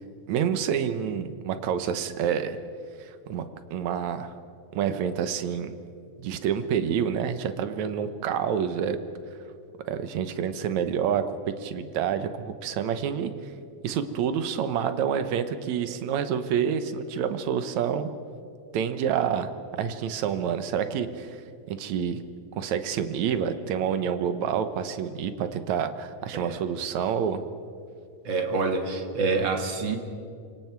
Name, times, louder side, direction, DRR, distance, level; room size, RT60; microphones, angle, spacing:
voice 1, 0.3-2.6 3.0-3.5 3.7-4.3 4.7-5.7 6.2-9.0 9.9-13.3 13.8-18.1 18.7-19.5 19.8-21.4 21.7-22.2 22.6-27.4, right 8 dB, 70° right, 10 dB, 2.2 m, -28 dB
voice 2, 28.2-30.0, right 3 dB, 45° right, 5 dB, 2.0 m, -27 dB
28.5 x 25.0 x 4.6 m, 2.4 s
omnidirectional pair, 3.6 m